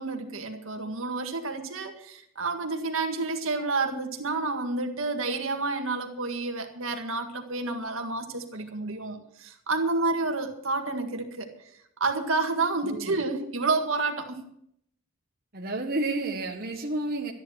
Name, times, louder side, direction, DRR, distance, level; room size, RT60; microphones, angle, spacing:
voice 1, 0.0-11.7 12.0-14.5, right 3 dB, 70° right, 5 dB, 1.9 m, -29 dB
voice 2, 12.8-13.1 15.5-17.3, right 2 dB, 45° right, 1 dB, 1.5 m, -30 dB
13.0 x 10.5 x 6.4 m, 0.70 s
head